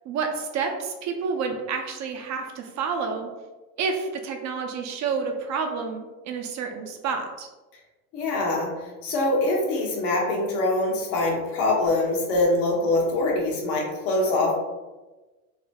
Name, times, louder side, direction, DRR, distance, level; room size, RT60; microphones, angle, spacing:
voice 1, 0.1-3.3 3.8-7.5, right 5 dB, 40° right, 3 dB, 0.5 m, -29 dB
voice 2, 8.1-8.7 9.0-14.5, left 2 dB, 75° left, -2 dB, 1.3 m, -24 dB
4.0 x 2.2 x 2.8 m, 1.2 s
hypercardioid pair, 95°, 44 cm